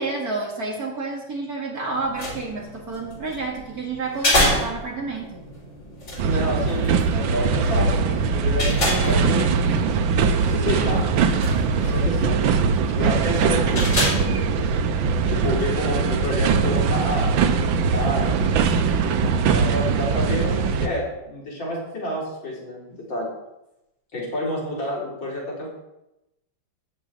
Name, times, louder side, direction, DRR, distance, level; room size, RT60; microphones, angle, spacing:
voice 1, 0.0-5.4, right 3 dB, 50° right, 0 dB, 2.7 m, -30 dB
sound 1, 1.9-15.4, left 1 dB, 35° left, 3.9 m, -29 dB
voice 2, 6.2-10.1 10.5-11.0 11.8-12.4 12.9-14.7 15.3-18.7 19.5-23.3 24.1-25.7, left 1 dB, 65° left, -4 dB, 4.9 m, -29 dB
sound 2, 6.2-20.9, right 5 dB, 75° right, 1.6 m, -21 dB
13.5 x 5.3 x 9.1 m, 0.91 s
omnidirectional pair, 2.2 m